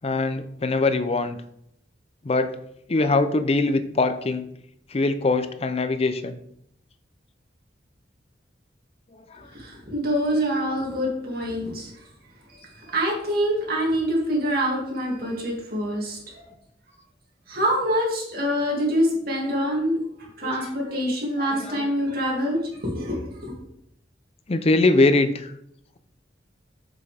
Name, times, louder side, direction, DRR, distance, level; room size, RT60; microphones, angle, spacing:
voice 1, 0.0-1.4 2.2-2.5 2.9-4.5 4.9-6.4 9.4-9.5 20.4-20.5 21.4-21.9 24.5-25.5, left 2 dB, 35° left, 10 dB, 0.5 m, -22 dB
voice 2, 9.5-11.9 12.5-16.4 17.5-20.0 20.4-23.5, equal, 55° right, -2 dB, 2.5 m, -25 dB
7.5 x 6.1 x 3.4 m, 0.73 s
head